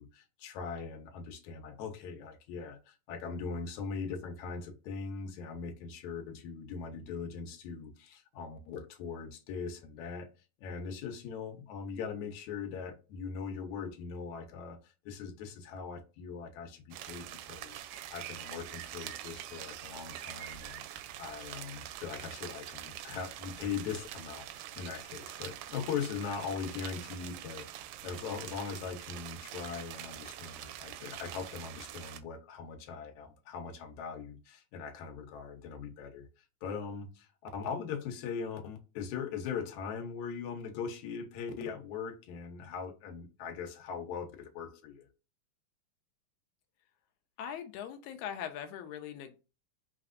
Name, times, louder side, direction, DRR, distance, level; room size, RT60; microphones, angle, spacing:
voice 1, 0.0-10.3 10.6-36.3 36.6-45.1, left 6 dB, 70° left, 2.1 m, -40 dB
sound 1, 16.9-32.2, right 12 dB, 85° right, 2.3 m, -45 dB
voice 2, 47.4-49.5, left 9 dB, 85° left, 1.7 m, -41 dB
5.7 x 3.2 x 2.5 m
omnidirectional pair, 3.9 m